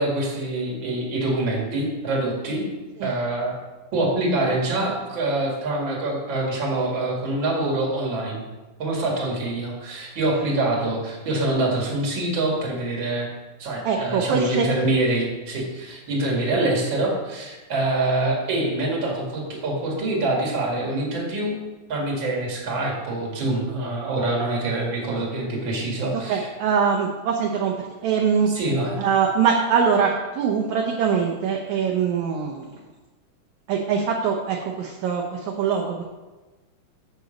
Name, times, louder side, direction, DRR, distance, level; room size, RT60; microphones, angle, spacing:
voice 1, 0.0-2.7 3.0-3.5 3.9-8.5 8.8-13.3 13.6-21.5 21.9-26.5 28.5-29.0, right 2 dB, 40° right, -2 dB, 2.3 m, -25 dB
voice 2, 13.9-14.7 26.3-27.8 28.0-28.5 29.0-32.6 33.7-36.0, right 6 dB, 75° right, 1 dB, 1.8 m, -23 dB
7.7 x 6.8 x 5.1 m, 1.2 s
omnidirectional pair, 4.1 m